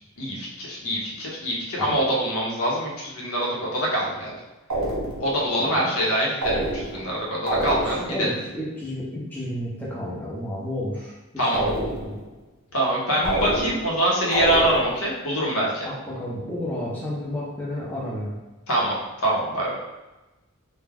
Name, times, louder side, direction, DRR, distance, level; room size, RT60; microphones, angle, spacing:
voice 1, 0.2-4.4 5.2-8.3 11.4-11.6 12.7-15.9 18.7-18.9 19.2-19.8, right 1 dB, 75° left, -3 dB, 0.7 m, -24 dB
sound 1, 4.7-5.4 6.4-7.1 7.5-8.2 11.5-12.3 13.2-14.0 14.3-15.1, right 1 dB, 75° right, 0.7 m, -27 dB
voice 2, 7.4-12.2 15.8-18.3, left 1 dB, 10° left, -7 dB, 0.5 m, -32 dB
2.3 x 2.1 x 3.3 m, 1.1 s
head